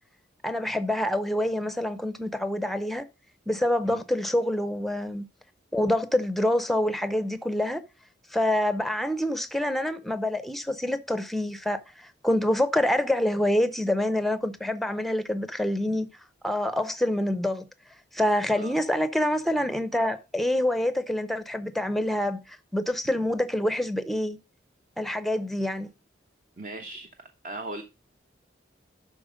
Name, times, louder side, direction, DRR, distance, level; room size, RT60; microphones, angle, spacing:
voice 1, 0.4-3.0 3.5-5.3 5.7-7.8 8.3-16.1 16.4-17.6 18.1-24.4 25.0-25.9, left 1 dB, ahead, 0.6 m, -26 dB
voice 2, 26.6-27.8, right 2 dB, 45° right, 0.9 m, -39 dB
11.5 x 4.3 x 5.0 m
head